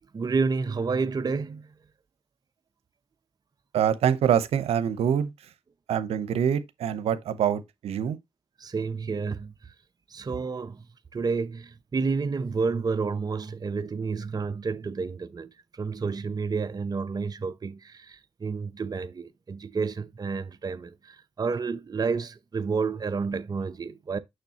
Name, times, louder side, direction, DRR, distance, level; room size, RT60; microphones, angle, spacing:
voice 1, 0.1-1.6 8.6-9.5 10.1-10.8 11.1-15.5 15.8-24.2, right 4 dB, 40° right, 0.7 m, -30 dB
voice 2, 3.7-5.3 5.9-8.2, right 8 dB, 85° right, 0.8 m, -25 dB
6.7 x 6.2 x 2.9 m
cardioid pair, 65°, 10 cm